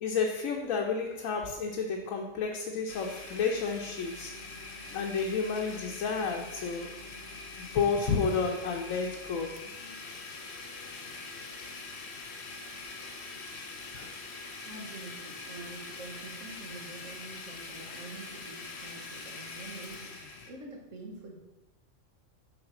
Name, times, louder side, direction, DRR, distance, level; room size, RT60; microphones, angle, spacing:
voice 1, 0.0-4.3 4.9-6.9 7.6-9.6 13.9-14.1, left 5 dB, 90° left, 1 dB, 1.1 m, -31 dB
Domestic sounds home sounds, 2.9-20.5, left 3 dB, 60° left, 1.1 m, -43 dB
voice 2, 14.6-20.1 20.5-21.4, right 2 dB, 70° right, 0 dB, 1.7 m, -46 dB
6.5 x 3.6 x 6.1 m, 0.97 s
omnidirectional pair, 1.3 m